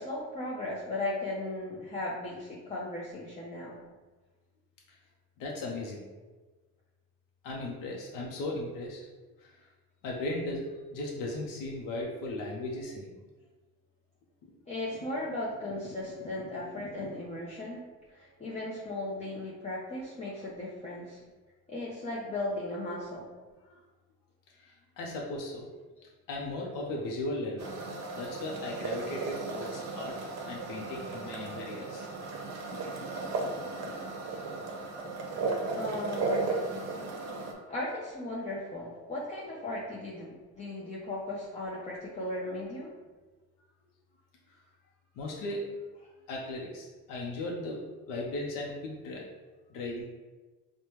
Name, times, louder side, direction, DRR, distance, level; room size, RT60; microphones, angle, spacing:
voice 1, 0.0-3.8 14.7-17.8 18.1-21.2 21.7-23.3 35.8-36.5 37.7-42.9, left 2 dB, 20° left, -6 dB, 0.6 m, -36 dB
voice 2, 5.4-6.1 7.4-9.0 9.4-9.7 10.0-10.6 10.9-13.2 16.2-16.3 17.0-17.1 23.6-23.8 24.5-25.7 26.3-27.7 28.1-30.1 30.5-32.1 44.5-44.6 45.2-45.6 46.3-47.8 48.1-49.2 49.7-50.0, left 2 dB, 85° left, -1 dB, 0.6 m, -37 dB
sound 1, 27.6-37.5, right 3 dB, 55° right, 0.7 m, -35 dB
4.9 x 2.2 x 3.0 m, 1.3 s
cardioid pair, 130°, 31 cm